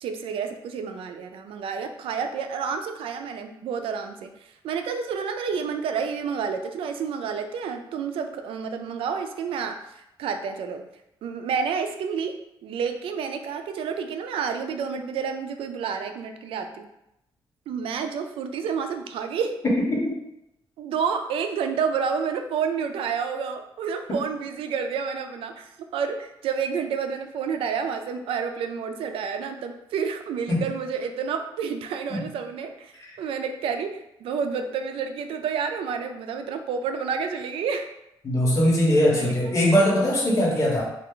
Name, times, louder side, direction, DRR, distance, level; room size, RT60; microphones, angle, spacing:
voice 1, 0.0-4.3 4.6-9.8 10.2-10.8 11.2-16.9 17.7-19.6 20.8-37.9 39.1-39.3, right 6 dB, 90° right, 7 dB, 0.4 m, -29 dB
voice 2, 38.2-40.8, equal, 35° left, -4 dB, 1.2 m, -21 dB
3.3 x 2.4 x 3.7 m, 0.85 s
cardioid pair, 140°, 9 cm